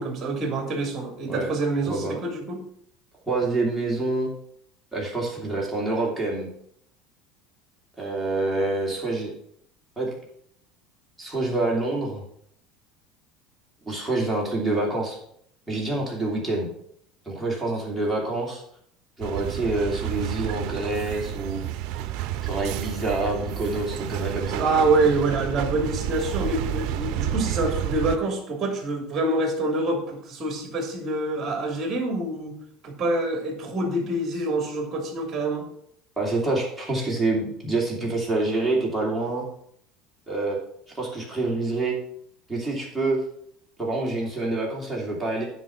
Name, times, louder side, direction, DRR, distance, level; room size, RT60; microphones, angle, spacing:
voice 1, 0.0-2.6 24.6-32.5 32.8-35.6, right 2 dB, 25° right, 2 dB, 3.0 m, -26 dB
voice 2, 1.8-2.2 3.3-4.3 4.9-6.5 8.0-9.3 10.0-10.1 11.2-12.2 13.9-15.2 15.7-16.7 17.2-18.6 19.2-21.6 22.4-24.8 36.2-39.4 40.3-40.6 40.9-42.0 42.5-43.2 43.8-45.5, right 2 dB, ahead, -5 dB, 2.9 m, -27 dB
sound 1, 19.2-28.2, right 12 dB, 60° right, 0.7 m, -30 dB
9.9 x 5.0 x 6.0 m, 0.68 s
supercardioid pair, 130°, 0 cm